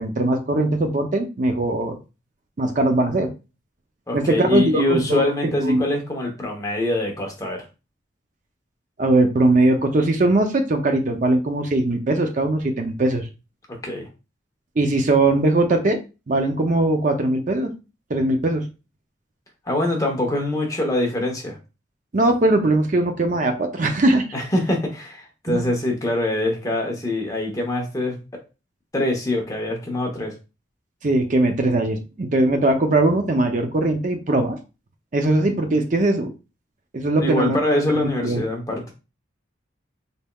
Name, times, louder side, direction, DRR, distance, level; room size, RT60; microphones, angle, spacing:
voice 1, 0.0-2.0 2.6-3.3 4.1-5.9 9.0-13.3 14.8-16.0 16.3-17.7 18.1-18.6 22.1-24.2 25.5-25.6 31.0-34.6 35.1-36.3 36.9-37.6 37.9-38.4, right 2 dB, 40° right, 5 dB, 0.5 m, -20 dB
voice 2, 4.1-7.6 13.8-14.1 19.7-21.6 24.3-28.1 28.9-30.3 37.2-38.9, left 1 dB, 15° left, 1 dB, 0.8 m, -24 dB
4.1 x 3.4 x 2.2 m, 0.30 s
head